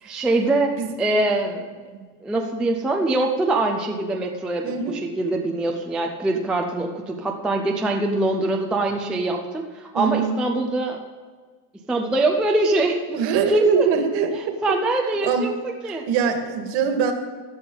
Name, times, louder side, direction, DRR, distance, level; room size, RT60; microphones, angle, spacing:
voice 1, 0.0-1.6 2.2-11.0 11.9-13.2 13.5-13.9 14.6-15.5 15.8-16.0, right 2 dB, ahead, 2 dB, 0.3 m, -23 dB
voice 2, 4.6-5.0 9.9-10.4 13.1-14.8 15.2-15.5 15.9-17.1, right 7 dB, 60° right, 5 dB, 1.9 m, -23 dB
16.0 x 11.0 x 3.9 m, 1.5 s
cardioid pair, 160°, 49 cm